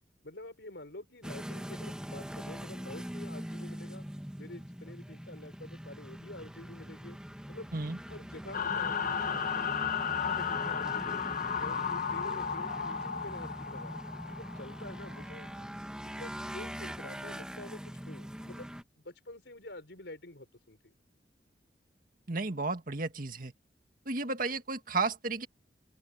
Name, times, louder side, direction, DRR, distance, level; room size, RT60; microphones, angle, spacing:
voice 1, 0.2-4.1 4.4-7.2 7.5-7.7 8.1-11.2 11.6-15.5 16.1-20.9, left 1 dB, 80° left, 4.8 m, -48 dB
sound 1, 1.2-18.8, equal, 5° right, 1.5 m, -42 dB
sound 2, 8.5-15.5, left 7 dB, 50° left, 1.0 m, -34 dB
voice 2, 22.3-23.5 24.1-25.5, right 3 dB, 50° right, 1.9 m, -33 dB
open air
head